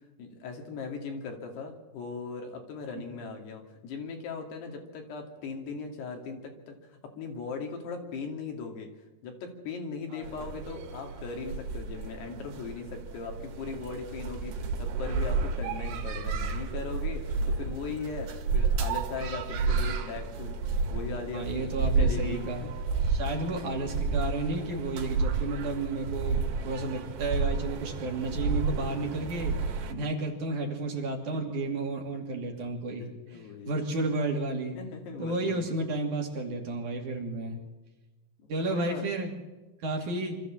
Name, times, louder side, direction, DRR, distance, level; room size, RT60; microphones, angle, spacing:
voice 1, 0.2-8.9 9.2-20.5 20.9-22.7 29.8-30.0 33.3-33.8 34.7-35.8 38.4-39.0, left 4 dB, 80° left, 3 dB, 4.5 m, -39 dB
sound 1, 10.2-29.9, right 4 dB, 85° right, 3.6 m, -31 dB
voice 2, 21.3-22.7 23.0-29.6 29.9-34.8 35.2-37.6 38.5-39.3 39.8-40.4, right 2 dB, 50° right, 1 dB, 4.0 m, -32 dB
25.0 x 14.0 x 7.4 m, 1.1 s
omnidirectional pair, 4.7 m